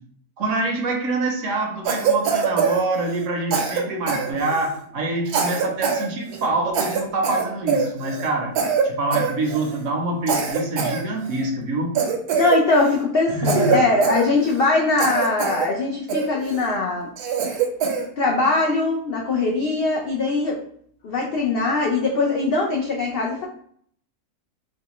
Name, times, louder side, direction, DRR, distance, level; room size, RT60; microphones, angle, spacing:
voice 1, 0.4-8.6 8.8-11.9 13.3-13.8, right 2 dB, 65° right, 2 dB, 0.9 m, -25 dB
Cough, 1.9-3.3 3.5-4.8 5.3-6.1 6.3-6.5 6.7-8.3 8.6-8.9 9.1-9.8 10.3-11.5 12.0-13.0 13.5-14.7 15.0-15.7 16.1-16.6 17.2-18.1, right 6 dB, 85° right, 1.2 m, -24 dB
voice 2, 12.4-17.1 18.2-20.6 21.0-23.5, left 3 dB, 80° left, -1 dB, 0.5 m, -21 dB
4.1 x 2.1 x 2.9 m, 0.62 s
omnidirectional pair, 1.6 m